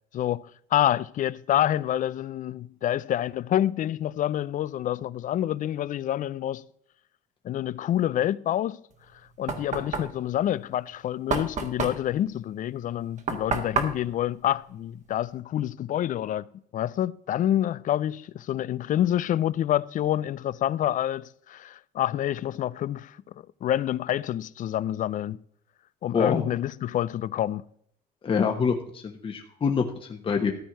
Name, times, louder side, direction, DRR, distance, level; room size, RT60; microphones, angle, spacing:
voice 1, 0.1-6.6 7.4-8.8 9.4-23.2 23.6-25.4 26.0-27.6, left 12 dB, 50° left, 0.5 m, -27 dB
Knock, 8.9-15.4, right 5 dB, 45° right, 1.6 m, -32 dB
voice 2, 26.1-26.4 28.2-30.5, left 6 dB, 30° left, 1.2 m, -26 dB
13.5 x 4.5 x 7.5 m
cardioid pair, 110°, 17 cm